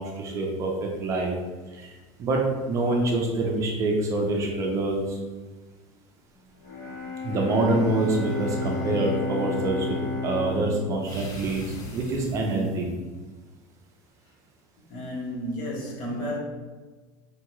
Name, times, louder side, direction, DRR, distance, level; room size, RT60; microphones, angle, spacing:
voice 1, 0.0-1.3 1.7-5.2 7.2-10.0 10.2-12.9, right 2 dB, 30° right, 0 dB, 0.5 m, -26 dB
Bowed string instrument, 6.6-12.6, left 3 dB, 80° left, 0.8 m, -33 dB
sound 1, 7.4-9.2 11.0-13.0, left 1 dB, 35° left, 0.6 m, -43 dB
voice 2, 14.9-16.4, equal, 55° left, -3 dB, 1.1 m, -32 dB
4.5 x 2.2 x 3.0 m, 1.3 s
cardioid pair, 155°, 10 cm